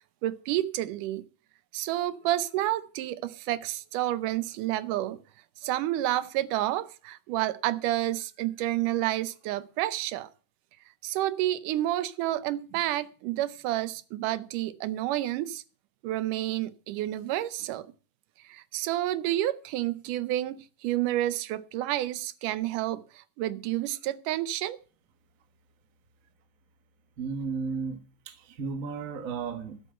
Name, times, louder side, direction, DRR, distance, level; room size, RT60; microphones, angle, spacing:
voice 1, 0.2-1.3 1.7-5.2 5.6-10.3 11.0-15.6 16.0-17.9 18.4-24.8, right 14 dB, 85° right, 2.3 m, -30 dB
voice 2, 27.2-29.8, right 5 dB, 45° right, 1.0 m, -34 dB
12.5 x 6.3 x 7.7 m
omnidirectional pair, 3.7 m